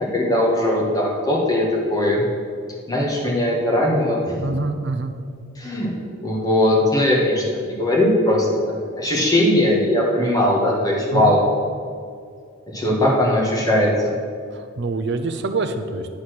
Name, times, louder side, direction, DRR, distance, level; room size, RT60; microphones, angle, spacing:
voice 1, 0.0-2.2 2.9-4.3 5.6-5.9 6.2-7.4 7.8-11.4 12.7-13.9, left 1 dB, 15° left, -3 dB, 1.5 m, -19 dB
voice 2, 4.4-5.1 11.1-11.4 14.5-16.1, right 3 dB, 55° right, 8 dB, 0.6 m, -25 dB
9.9 x 4.2 x 6.3 m, 2.2 s
head